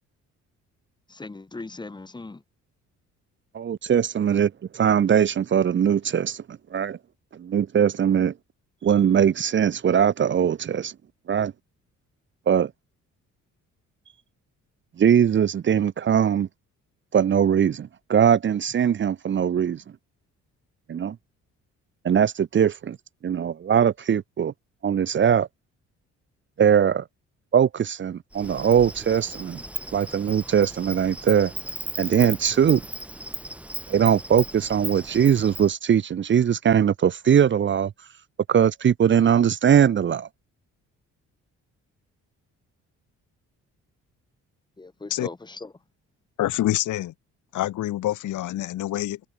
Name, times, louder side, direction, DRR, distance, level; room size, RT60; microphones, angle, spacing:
voice 1, 1.1-2.4 44.8-45.7, left 3 dB, 15° left, 1.1 m, -38 dB
voice 2, 3.5-7.0 7.4-8.3 8.8-10.9 11.3-11.5 12.5-12.7 15.0-16.5 17.1-19.8 20.9-21.2 22.0-23.0 23.2-24.5 24.8-25.5 26.6-27.0 27.5-29.6 29.9-31.5 32.0-32.8 33.9-37.9 38.5-40.3, right 8 dB, 40° right, 0.7 m, -21 dB
Insect, 28.3-35.7, right 1 dB, 5° right, 3.0 m, -37 dB
voice 3, 46.4-47.1 47.5-49.3, left 14 dB, 80° left, 1.9 m, -26 dB
cardioid pair, 90°, 30 cm